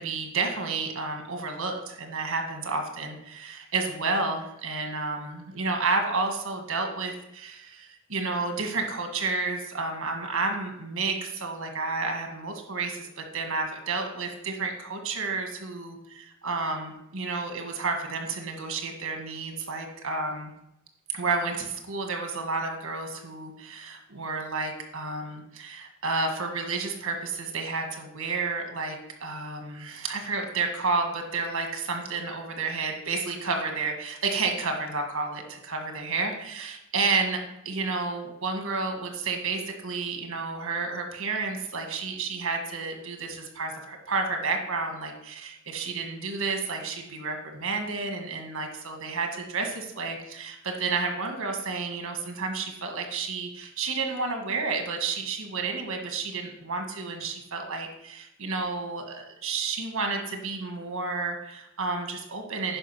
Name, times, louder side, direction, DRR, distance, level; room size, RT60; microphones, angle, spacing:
voice 1, 0.0-20.5 21.1-37.4 37.7-62.8, right 4 dB, 85° right, 4 dB, 1.7 m, -31 dB
9.9 x 5.0 x 5.7 m, 0.82 s
head